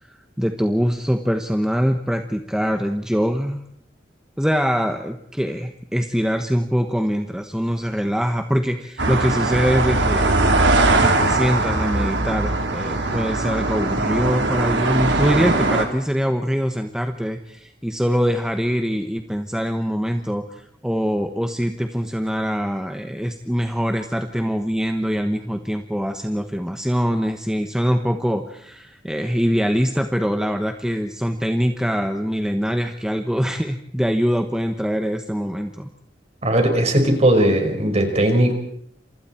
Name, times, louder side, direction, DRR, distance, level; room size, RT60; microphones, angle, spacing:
voice 1, 0.0-3.6 4.4-10.4 10.9-35.9, equal, 5° right, 5 dB, 1.2 m, -23 dB
sound 1, 9.0-15.9, right 2 dB, 85° right, 3.8 m, -20 dB
voice 2, 36.4-38.5, right 1 dB, 35° right, 4 dB, 5.1 m, -18 dB
29.0 x 27.5 x 4.5 m, 0.68 s
head